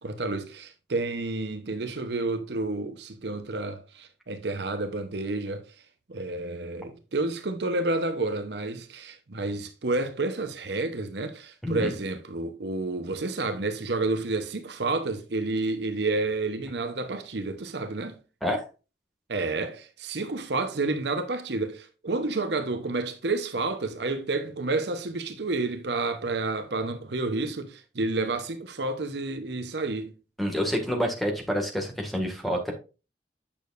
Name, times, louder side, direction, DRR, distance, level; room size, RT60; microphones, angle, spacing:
voice 1, 0.0-5.6 6.1-18.2 19.3-30.1, right 3 dB, 65° right, 0.9 m, -30 dB
voice 2, 11.6-11.9 18.4-18.6 30.4-32.7, equal, ahead, 1.9 m, -28 dB
8.7 x 6.8 x 2.5 m
head